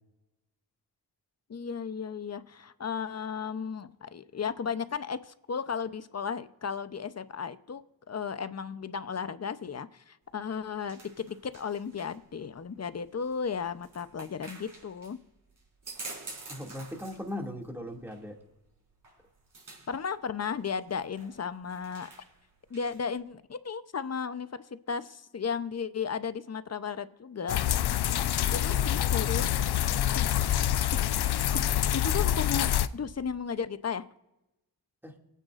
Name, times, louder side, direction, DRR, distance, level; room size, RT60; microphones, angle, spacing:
voice 1, 1.5-7.8 8.1-15.2 19.9-22.1 22.7-29.5 30.1-30.2 31.5-34.0, left 6 dB, 40° left, 12 dB, 0.8 m, -35 dB
sound 1, 10.2-23.2, right 2 dB, 50° right, 4.9 m, -49 dB
voice 2, 16.5-18.4 35.0-35.1, left 1 dB, 5° right, 1 dB, 2.4 m, -39 dB
sound 2, 27.5-32.9, left 11 dB, 75° left, 0.6 m, -26 dB
27.0 x 9.2 x 2.6 m, 0.95 s
cardioid pair, 55°, 39 cm